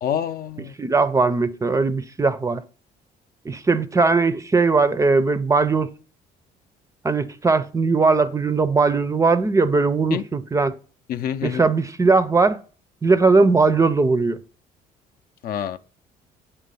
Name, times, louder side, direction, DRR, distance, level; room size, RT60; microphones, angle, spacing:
voice 1, 0.0-0.7 10.1-10.2 11.1-11.6 15.4-15.8, left 9 dB, 60° left, 0.5 m, -27 dB
voice 2, 0.6-2.6 3.5-5.9 7.0-10.8 11.4-12.6 13.0-14.4, right 4 dB, 20° right, 0.4 m, -19 dB
8.3 x 3.4 x 5.4 m
cardioid pair, 110°, 17 cm